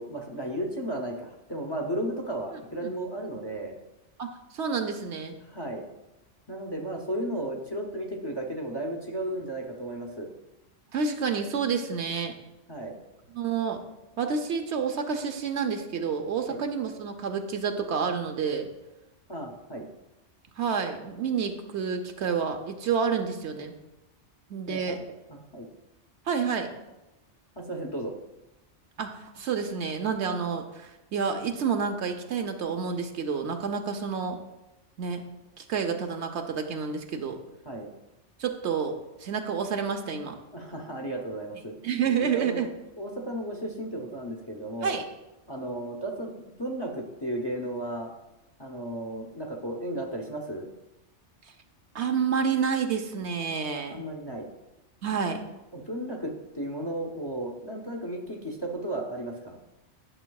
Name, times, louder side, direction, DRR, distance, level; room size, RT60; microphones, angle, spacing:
voice 1, 0.0-3.8 5.4-5.8 6.5-10.3 12.7-13.0 16.5-16.6 19.3-19.9 24.7-25.0 25.3-25.7 27.6-28.1 37.7-37.9 40.5-41.7 42.2-42.7 43.0-45.0 45.5-48.1 48.6-50.7 53.9-54.5 55.7-59.6, right 1 dB, 25° left, 0 dB, 0.7 m, -34 dB
voice 2, 4.2-5.4 10.9-12.3 13.3-13.8 14.2-18.7 20.6-23.7 24.5-25.0 26.3-26.7 29.0-34.4 35.0-35.2 35.6-37.4 38.4-38.9 39.2-40.3 41.8-42.7 44.8-45.0 51.9-54.0 55.0-55.4, right 6 dB, 70° right, 5 dB, 1.0 m, -29 dB
11.0 x 6.8 x 2.3 m, 0.99 s
omnidirectional pair, 1.2 m